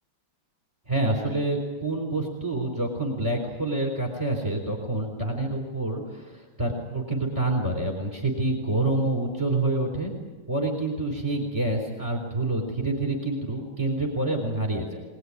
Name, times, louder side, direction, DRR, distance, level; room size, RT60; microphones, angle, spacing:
voice 1, 0.9-10.1 10.5-15.0, right 2 dB, 15° right, 0 dB, 3.9 m, -27 dB
24.0 x 19.5 x 9.8 m, 1.3 s
omnidirectional pair, 2.2 m